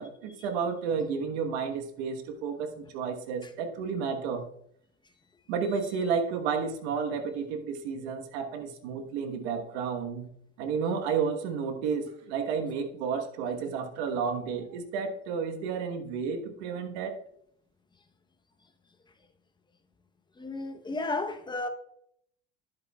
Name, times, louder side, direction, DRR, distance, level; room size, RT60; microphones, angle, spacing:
voice 1, 0.0-4.4 5.5-10.3 10.6-17.2, right 6 dB, 80° right, 1.3 m, -31 dB
voice 2, 20.4-21.7, left 2 dB, 15° left, 0.9 m, -33 dB
10.5 x 8.3 x 2.3 m
supercardioid pair, 110°, 33 cm